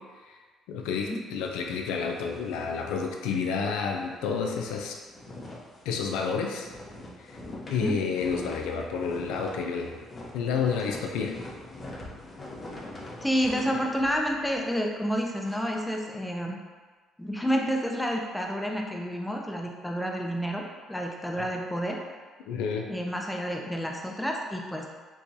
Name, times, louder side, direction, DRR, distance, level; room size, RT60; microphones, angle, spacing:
voice 1, 0.7-5.0 5.9-6.7 7.7-10.0 10.3-11.3 21.4-21.5 22.5-22.9, left 5 dB, 85° left, 2 dB, 0.4 m, -30 dB
sound 1, 1.3-3.6 3.9-4.0 4.4-15.5, left 1 dB, 35° left, 0.8 m, -44 dB
voice 2, 13.2-16.6 17.2-20.6 20.9-22.0 22.9-24.9, equal, 5° left, 0 dB, 0.4 m, -29 dB
4.5 x 2.2 x 2.7 m, 1.4 s
supercardioid pair, 80°, 0 cm